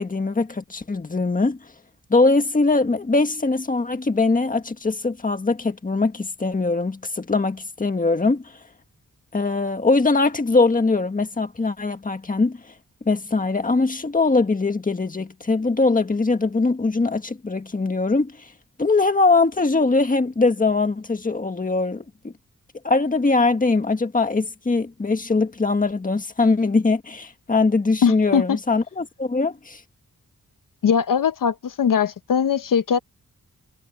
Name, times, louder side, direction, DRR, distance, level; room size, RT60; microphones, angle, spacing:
voice 1, 0.0-1.6 2.1-8.4 9.3-12.6 13.0-18.4 18.8-22.3 22.8-29.8, left 3 dB, 25° left, 1.6 m, -21 dB
voice 2, 28.0-28.6 30.8-33.0, left 7 dB, 75° left, 0.8 m, -20 dB
wide cardioid pair, 170°, 33 cm